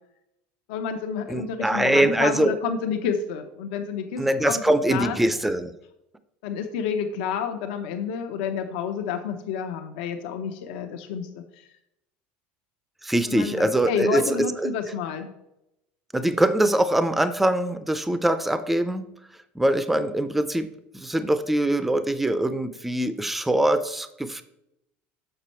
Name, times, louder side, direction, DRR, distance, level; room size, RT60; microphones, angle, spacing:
voice 1, 0.7-4.6 4.9-5.2 6.4-11.7 13.2-15.3, left 7 dB, 80° left, 6 dB, 0.8 m, -30 dB
voice 2, 1.3-2.6 4.2-5.7 13.0-14.7 16.1-19.1 19.6-20.7 20.9-24.4, right 1 dB, 5° right, 11 dB, 0.4 m, -23 dB
6.8 x 6.2 x 4.3 m, 0.85 s
cardioid pair, 165°, 5 cm